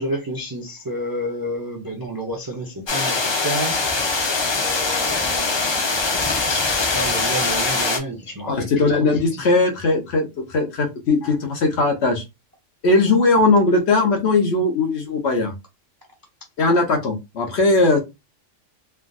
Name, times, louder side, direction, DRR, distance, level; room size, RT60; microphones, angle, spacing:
voice 1, 0.0-4.1 4.6-5.8 6.5-6.7 6.9-8.7 9.0-9.1, right 1 dB, 30° right, 0.4 m, -30 dB
sound 1, 2.9-8.0, left 3 dB, 45° left, 0.3 m, -22 dB
voice 2, 8.5-12.2 12.8-15.5 16.6-18.0, left 3 dB, 60° left, 1.0 m, -19 dB
3.4 x 2.5 x 2.3 m
omnidirectional pair, 1.3 m